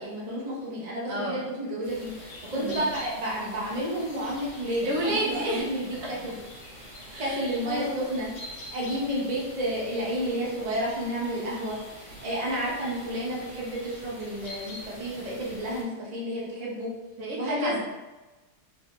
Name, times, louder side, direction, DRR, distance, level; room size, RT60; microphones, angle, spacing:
voice 1, 0.0-5.9 6.2-6.4 7.2-8.3 8.7-16.9 17.4-17.8, equal, 40° right, -5 dB, 0.7 m, -31 dB
voice 2, 1.1-1.5 2.5-2.9 4.8-5.7 6.0-6.1 7.1-8.0 17.2-17.8, right 1 dB, 75° right, -3 dB, 1.0 m, -31 dB
sound 1, 1.8-10.3 10.7-14.8, left 1 dB, 75° left, 0.4 m, -48 dB
sound 2, 1.8-15.8, equal, 50° left, 1.3 m, -47 dB
3.2 x 2.2 x 2.9 m, 1.2 s
omnidirectional pair, 1.5 m